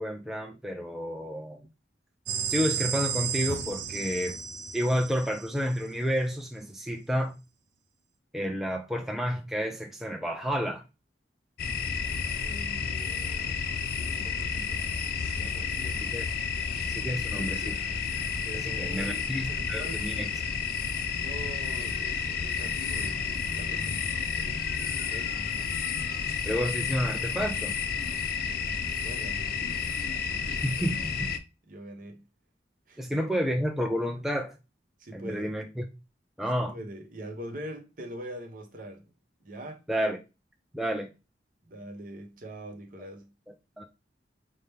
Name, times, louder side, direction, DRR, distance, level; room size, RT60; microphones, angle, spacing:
voice 1, 0.0-1.6 2.5-4.4 4.7-7.3 8.3-10.8 16.0-16.3 16.9-17.8 18.8-20.3 26.5-27.8 30.6-31.3 33.0-34.5 35.1-35.8 36.4-36.7 39.9-40.2 40.7-41.1 43.8-43.9, equal, ahead, 0.4 m, -30 dB
sound 1, 2.3-6.0, right 7 dB, 90° right, 0.6 m, -33 dB
sound 2, 11.6-31.4, left 6 dB, 55° left, 0.5 m, -31 dB
voice 2, 12.4-13.6 14.0-14.9 15.3-16.1 18.4-20.3 20.9-24.0 24.4-25.4 28.4-31.3 31.7-32.2 32.9-33.0 35.0-35.6 36.6-39.0 39.4-39.8 41.7-43.3, right 1 dB, 50° right, 0.8 m, -44 dB
5.5 x 2.2 x 3.3 m
head